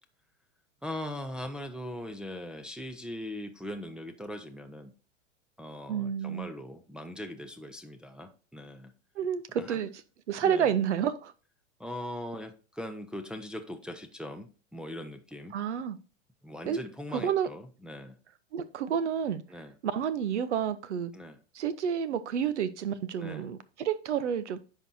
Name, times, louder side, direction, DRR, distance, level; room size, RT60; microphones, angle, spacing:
voice 1, 0.8-4.9 5.6-8.9 9.6-9.8 10.4-10.7 11.8-15.6 16.4-18.2 19.5-19.7 21.1-21.4 23.2-23.5, left 1 dB, ahead, 0.6 m, -40 dB
voice 2, 5.9-6.5 9.2-9.9 10.3-11.3 15.5-16.0 16.6-16.8 17.1-17.5 18.5-19.4 19.8-21.1 21.5-24.6, right 8 dB, 70° right, 0.9 m, -30 dB
10.0 x 4.7 x 2.7 m
figure-of-eight pair, 95°, 36 cm